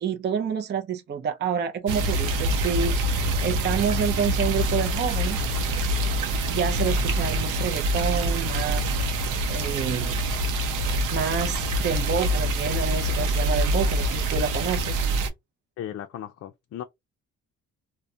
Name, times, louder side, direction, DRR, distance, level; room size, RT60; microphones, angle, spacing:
voice 1, 0.0-5.6 6.5-9.0 9.5-10.2 11.1-15.0, right 7 dB, 35° right, 0.5 m, -28 dB
sound 1, 1.9-15.3, right 1 dB, 80° right, 0.6 m, -25 dB
voice 2, 15.8-16.8, left 11 dB, 50° left, 0.4 m, -36 dB
2.3 x 2.1 x 2.6 m
cardioid pair, 90°, 30 cm